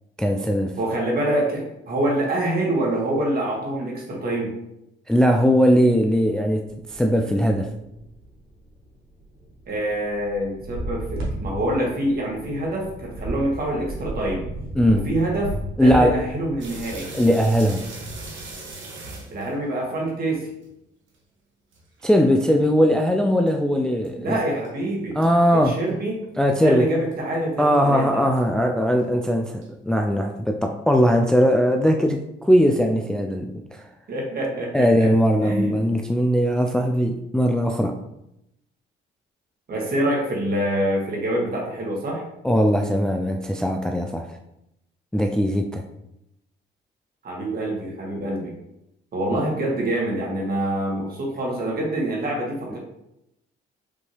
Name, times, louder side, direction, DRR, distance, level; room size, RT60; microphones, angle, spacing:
voice 1, 0.2-0.8 5.1-7.7 14.8-15.1 15.8-16.3 17.1-17.9 22.0-24.4 25.2-25.8 26.4-26.9 27.6-33.9 34.7-38.0 42.4-44.4 45.1-45.8 49.3-49.4, equal, 5° left, 3 dB, 0.3 m, -20 dB
voice 2, 0.8-4.5 9.7-14.4 14.9-17.1 19.3-20.5 24.2-25.2 25.5-26.2 26.6-28.2 34.1-35.1 35.4-35.8 39.7-42.2 47.2-48.5 49.1-52.8, right 1 dB, 50° right, -2 dB, 1.7 m, -26 dB
sound 1, 6.6-18.7, right 1 dB, 90° right, 1.3 m, -35 dB
sound 2, 16.6-20.7 21.1-21.2 21.7-22.9 23.5-23.6 24.0-24.1 24.6-24.7 25.3-25.4 25.9-26.0 26.5-26.6 27.1-27.2 27.7-27.8 28.4-28.5 29.0-29.1 29.6-29.7, right 3 dB, 70° right, 1.2 m, -40 dB
5.3 x 2.8 x 3.2 m, 0.84 s
cardioid pair, 90°, 20 cm